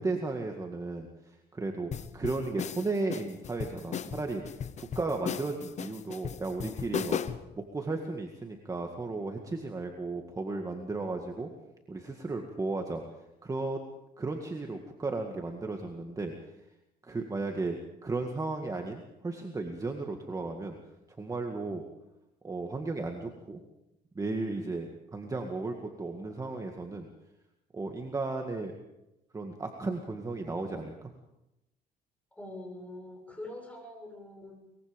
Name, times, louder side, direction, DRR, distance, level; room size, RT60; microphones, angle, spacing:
voice 1, 0.0-4.4 4.8-7.2 7.5-11.5 11.9-13.0 13.4-13.8 14.2-16.3 17.0-20.8 21.2-21.8 22.4-23.6 24.2-27.1 27.7-28.8 29.3-31.1, right 3 dB, 20° right, 3 dB, 2.0 m, -35 dB
sound 1, 1.9-7.5, left 8 dB, 45° left, 1.0 m, -36 dB
voice 2, 32.3-34.6, left 1 dB, 10° left, 1 dB, 7.1 m, -44 dB
23.0 x 22.0 x 5.3 m, 0.91 s
cardioid pair, 110°, 17 cm